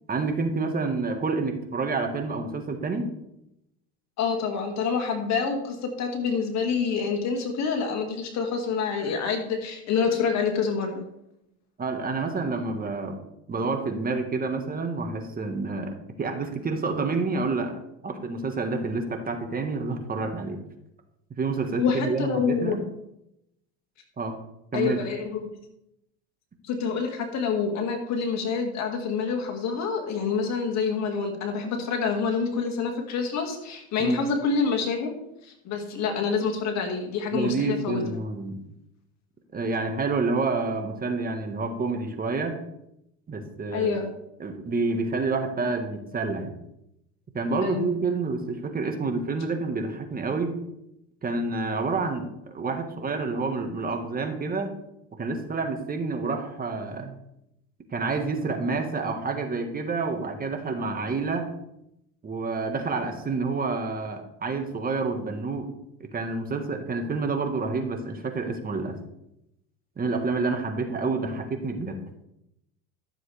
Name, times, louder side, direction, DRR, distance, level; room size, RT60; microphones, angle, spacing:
voice 1, 0.1-3.1 11.8-13.2 13.5-20.6 21.4-22.8 24.2-24.4 24.7-25.0 34.0-34.2 37.3-38.5 39.5-42.6 43.3-44.0 44.4-46.5 47.3-50.6 51.2-54.7 55.2-57.1 57.9-61.5 62.2-65.7 66.0-69.0 70.0-72.0, right 3 dB, 25° right, 5 dB, 1.7 m, -28 dB
voice 2, 4.2-11.1 21.8-22.8 24.7-25.5 26.6-35.1 35.4-38.0 43.7-44.1 47.6-47.9, left 5 dB, 50° left, 3 dB, 2.2 m, -27 dB
13.0 x 7.2 x 3.5 m, 0.81 s
supercardioid pair, 100°, 34 cm